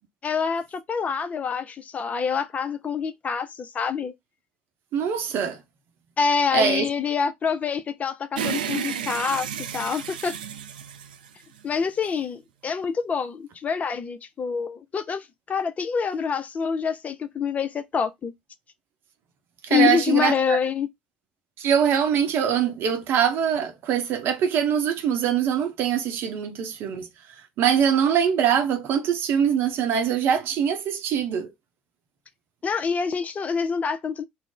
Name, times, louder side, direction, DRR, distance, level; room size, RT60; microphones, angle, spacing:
voice 1, 0.2-4.1 6.2-9.5 9.7-10.4 11.6-18.3 19.7-20.9 32.6-34.3, left 6 dB, 30° left, 0.4 m, -26 dB
voice 2, 4.9-5.6 6.5-6.9 19.6-20.6 21.6-27.1 27.6-31.5, right 8 dB, 50° right, 0.7 m, -23 dB
sound 1, 8.4-11.8, right 8 dB, 80° right, 0.3 m, -32 dB
2.5 x 2.0 x 3.6 m
figure-of-eight pair, 65°, 5 cm